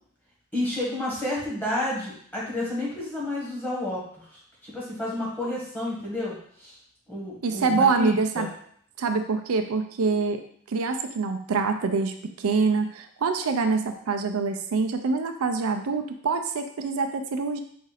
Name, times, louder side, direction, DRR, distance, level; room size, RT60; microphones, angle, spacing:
voice 1, 0.5-6.8 7.1-8.5, left 1 dB, 10° left, -6 dB, 1.4 m, -31 dB
voice 2, 7.4-8.5 9.0-10.4 10.7-17.6, right 4 dB, 80° right, 6 dB, 0.5 m, -25 dB
5.0 x 2.6 x 4.0 m, 0.62 s
head